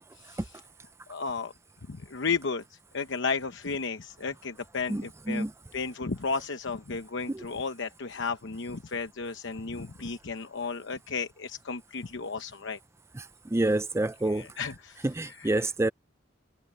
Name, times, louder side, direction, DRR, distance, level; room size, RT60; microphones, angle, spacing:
voice 1, 0.2-0.5 1.1-1.5 1.9-5.5 5.7-12.8 14.2-15.7, left 4 dB, 65° left, 0.9 m, -34 dB
voice 2, 4.9-5.5 7.3-7.4 13.2-13.3 13.5-14.5 15.0-15.9, right 2 dB, 15° right, 0.4 m, -28 dB
head